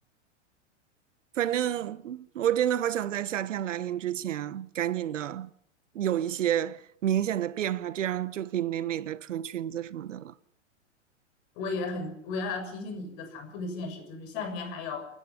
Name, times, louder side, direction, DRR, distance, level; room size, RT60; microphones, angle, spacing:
voice 1, 1.4-5.5 5.9-10.3, right 11 dB, 80° right, 1.2 m, -30 dB
voice 2, 11.6-15.1, left 3 dB, 50° left, 7.0 m, -35 dB
28.5 x 10.5 x 10.0 m
hypercardioid pair, 115°, 37 cm